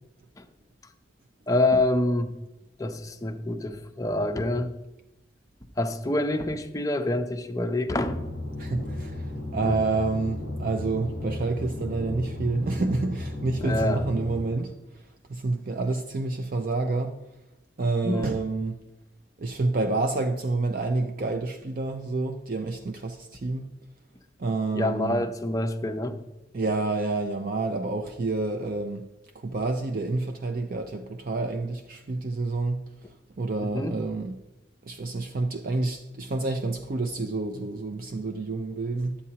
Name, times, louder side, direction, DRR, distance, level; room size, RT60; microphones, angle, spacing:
voice 1, 1.5-2.4 2.8-4.7 5.8-8.2 9.6-9.8 13.6-14.0 18.0-18.3 24.7-26.2 33.7-34.0, left 1 dB, 15° left, 0.5 m, -26 dB
sound 1, 8.0-14.4, left 1 dB, 75° right, 3.3 m, -34 dB
voice 2, 8.6-14.8 15.3-17.2 17.8-18.8 19.4-23.7 24.4-25.3 26.5-29.1 29.3-32.8 33.4-34.3 34.8-39.2, right 3 dB, 45° right, 0.4 m, -28 dB
11.0 x 8.4 x 2.8 m
head